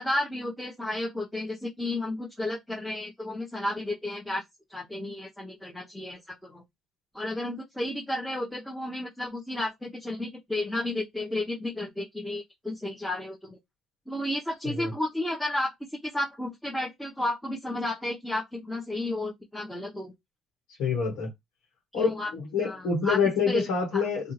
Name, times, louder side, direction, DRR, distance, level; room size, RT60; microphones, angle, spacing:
voice 1, 0.0-4.4 4.7-6.6 7.1-13.6 14.1-15.7 16.0-20.1 22.0-22.3 22.6-23.2 23.5-23.6 23.9-24.0, left 1 dB, 10° left, 0.8 m, -32 dB
voice 2, 20.8-21.3 21.9-24.3, left 5 dB, 75° left, 1.2 m, -27 dB
2.6 x 2.3 x 3.0 m
supercardioid pair, 70°, 0 cm